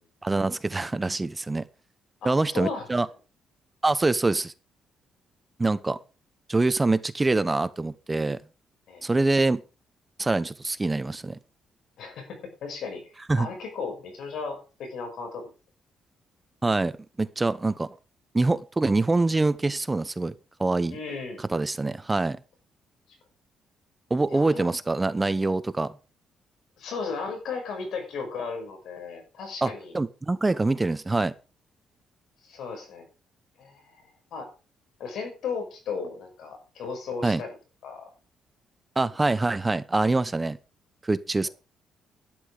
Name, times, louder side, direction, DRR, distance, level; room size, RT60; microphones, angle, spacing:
voice 1, 0.2-1.6 2.2-3.1 3.8-4.5 5.6-6.0 6.5-8.4 9.0-9.6 10.2-11.4 13.3-13.5 16.6-17.9 18.3-20.3 20.6-21.0 21.5-22.4 24.1-25.9 29.6-31.3 37.2-37.4 39.0-40.6 41.0-41.5, right 2 dB, 20° right, 0.9 m, -25 dB
voice 2, 2.2-2.9 8.9-9.0 12.0-15.5 20.9-21.4 24.3-24.7 26.8-30.0 32.4-33.0 33.6-34.5 35.0-37.5 37.8-38.1, left 5 dB, 75° left, 6.4 m, -35 dB
12.0 x 10.0 x 5.0 m
cardioid pair, 90°, 0 cm